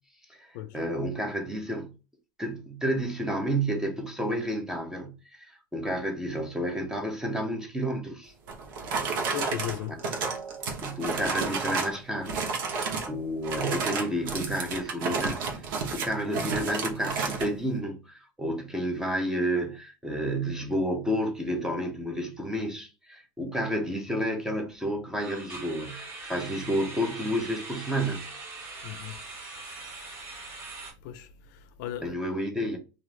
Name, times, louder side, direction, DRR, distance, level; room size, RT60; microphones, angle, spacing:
voice 1, 0.3-1.9 2.4-8.3 10.8-15.7 15.9-28.3 32.0-32.8, equal, 5° right, 0.7 m, -31 dB
Rummaging in a drawer, 8.5-12.0 12.2-13.1 13.4-17.5, right 4 dB, 80° right, 0.9 m, -31 dB
voice 2, 9.3-9.9 28.8-29.2 31.0-32.1, left 12 dB, 65° left, 0.5 m, -36 dB
sound 1, 19.0-19.3 19.6-19.8 20.2-20.3 25.2-30.9, right 3 dB, 25° right, 1.0 m, -42 dB
2.5 x 2.4 x 3.1 m
supercardioid pair, 145°, 11 cm